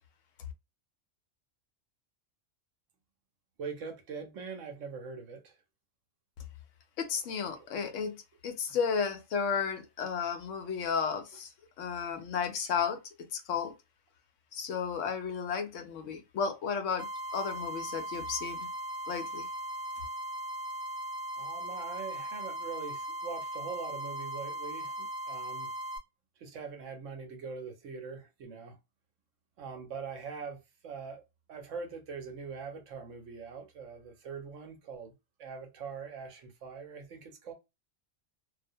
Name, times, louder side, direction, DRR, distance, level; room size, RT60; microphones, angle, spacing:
voice 1, 3.6-5.6 7.3-8.0 8.7-8.8 21.4-25.7 26.4-28.8 29.6-30.6 30.8-31.2 31.5-35.1 35.4-37.5, right 5 dB, 75° right, 1.0 m, -43 dB
voice 2, 7.0-8.2 8.4-11.5 11.8-13.0 13.3-13.7 14.5-18.7 19.1-19.5, left 6 dB, 75° left, 0.9 m, -33 dB
sound 1, 17.0-26.0, right 1 dB, 40° right, 0.8 m, -38 dB
2.4 x 2.1 x 2.6 m
omnidirectional pair, 1.3 m